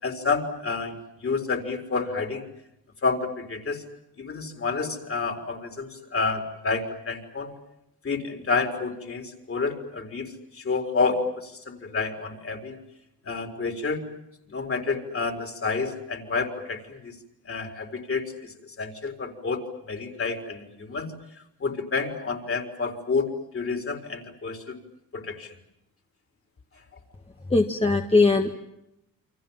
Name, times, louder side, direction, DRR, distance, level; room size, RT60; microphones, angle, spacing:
voice 1, 0.0-2.4 3.0-3.8 4.2-7.5 8.0-12.8 13.2-14.0 14.5-17.1 17.5-18.5 18.8-19.6 19.8-21.1 21.6-24.7 25.1-25.5, left 4 dB, 40° left, 4 dB, 4.4 m, -29 dB
voice 2, 27.5-28.5, left 3 dB, 15° left, 3 dB, 1.7 m, -20 dB
29.0 x 25.0 x 7.4 m, 0.84 s
cardioid pair, 95°, 35 cm